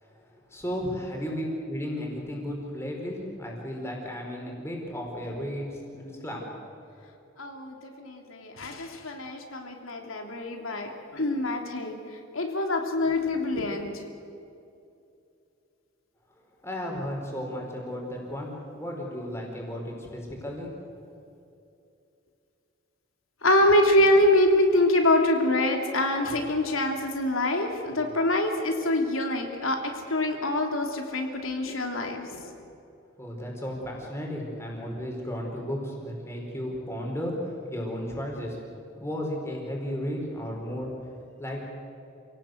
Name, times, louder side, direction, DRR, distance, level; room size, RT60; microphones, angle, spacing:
voice 1, 0.5-6.5 16.6-20.7 33.2-38.6 39.0-40.9 41.4-41.6, equal, 15° left, 0 dB, 4.9 m, -34 dB
voice 2, 7.4-11.9 12.3-13.9 23.4-32.5, left 1 dB, 85° left, 3 dB, 3.1 m, -25 dB
28.5 x 17.5 x 8.0 m, 2.7 s
head